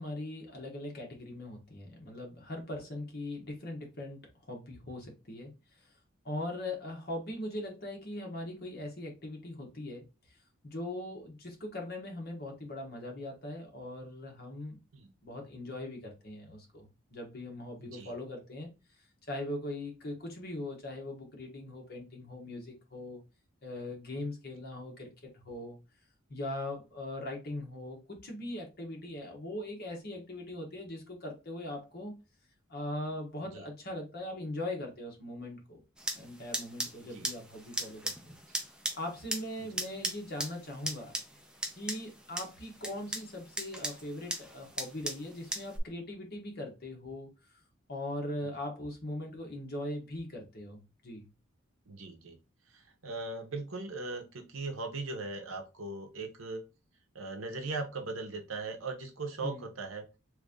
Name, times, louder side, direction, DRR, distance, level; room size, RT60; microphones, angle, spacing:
voice 1, 0.0-4.2 4.5-5.5 6.2-10.1 10.6-14.8 15.2-18.7 19.3-23.2 23.6-25.8 26.3-32.2 32.7-35.8 36.1-38.3 39.0-41.2 41.7-47.3 47.9-51.3 59.4-59.7, left 1 dB, 50° left, 1.1 m, -40 dB
voice 2, 17.8-18.1 33.5-33.6 37.1-37.3 39.6-39.8 51.9-52.4 52.7-56.6 57.1-60.0, right 3 dB, 75° right, 0.8 m, -39 dB
sound 1, 36.0-45.8, right 1 dB, 5° right, 0.4 m, -39 dB
3.1 x 2.6 x 3.5 m
head